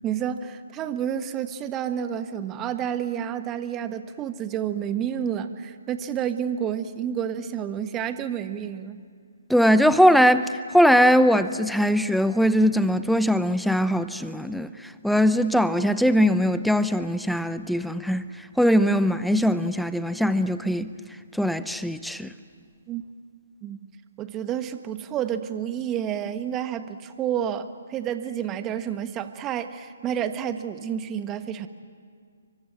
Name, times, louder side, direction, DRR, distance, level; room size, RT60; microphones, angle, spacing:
voice 1, 0.0-9.0 22.9-23.0 23.6-23.8 24.2-31.7, right 9 dB, 20° right, 1.3 m, -30 dB
voice 2, 9.5-10.5 10.7-14.7 15.0-18.2 18.6-20.9 21.4-22.3, equal, ahead, 0.7 m, -20 dB
29.0 x 24.0 x 7.6 m
figure-of-eight pair, 135°, 0 cm